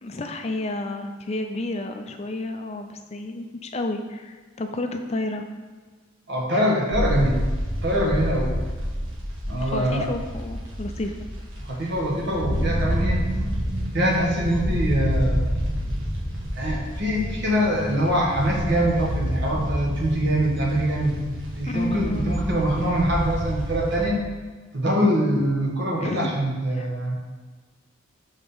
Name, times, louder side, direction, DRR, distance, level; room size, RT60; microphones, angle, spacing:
voice 1, 0.0-5.4 9.6-11.2 21.7-22.4 26.0-26.3 26.7-26.9, left 2 dB, 30° left, 6 dB, 0.4 m, -30 dB
voice 2, 6.3-7.4 7.8-8.5 9.5-10.1 11.6-13.2 13.9-15.6 16.6-21.2 21.5-24.2 24.7-27.2, equal, 55° right, -2 dB, 1.3 m, -24 dB
sound 1, 6.9-24.1, equal, 80° right, 1.3 m, -28 dB
4.9 x 3.6 x 5.3 m, 1.4 s
head